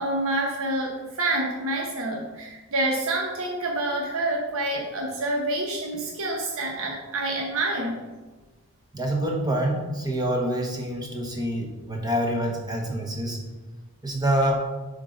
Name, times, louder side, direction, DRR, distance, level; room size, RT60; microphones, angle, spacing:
voice 1, 0.0-8.0, right 2 dB, 65° right, 0 dB, 0.9 m, -27 dB
voice 2, 8.9-13.4 14.0-14.6, right 1 dB, 20° right, 0 dB, 1.1 m, -26 dB
7.3 x 3.8 x 5.1 m, 1.2 s
head